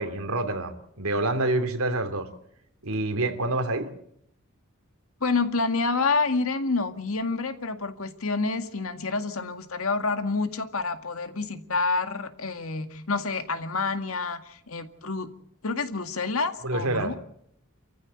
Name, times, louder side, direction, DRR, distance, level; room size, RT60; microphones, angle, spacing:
voice 1, 0.0-2.3 2.8-3.9 16.6-17.2, right 2 dB, 85° right, 2.9 m, -27 dB
voice 2, 5.2-15.3 15.6-17.2, left 3 dB, 75° left, 2.0 m, -28 dB
28.0 x 15.0 x 8.2 m
head